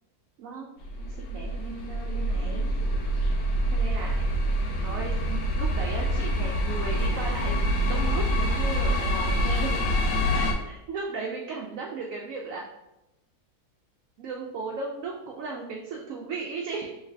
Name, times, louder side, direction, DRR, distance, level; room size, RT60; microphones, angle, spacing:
sound 1, 0.8-10.5, equal, 80° left, 1.2 m, -26 dB
voice 1, 1.0-2.6 3.7-4.2 4.8-9.8 10.3-12.6 14.2-17.0, right 4 dB, 70° right, 0 dB, 0.8 m, -36 dB
3.4 x 3.2 x 3.4 m, 0.91 s
omnidirectional pair, 1.8 m